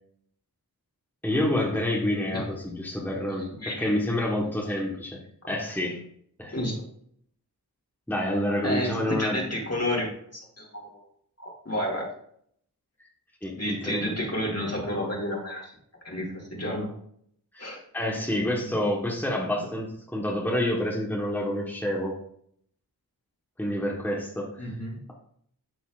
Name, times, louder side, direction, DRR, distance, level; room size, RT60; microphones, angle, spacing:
voice 1, 1.2-5.2 5.5-6.0 6.4-6.5 8.1-9.4 13.4-14.2 17.5-17.7 17.9-22.2 23.6-24.7, left 1 dB, 5° left, -3 dB, 1.4 m, -28 dB
voice 2, 3.3-3.9 5.4-5.5 6.5-6.8 8.6-11.0 11.4-12.1 13.6-15.7 16.0-16.9 17.6-17.8 18.6-18.8 24.6-25.0, left 1 dB, 40° left, -2 dB, 2.5 m, -31 dB
11.5 x 4.1 x 2.5 m, 0.65 s
wide cardioid pair, 45°, 39 cm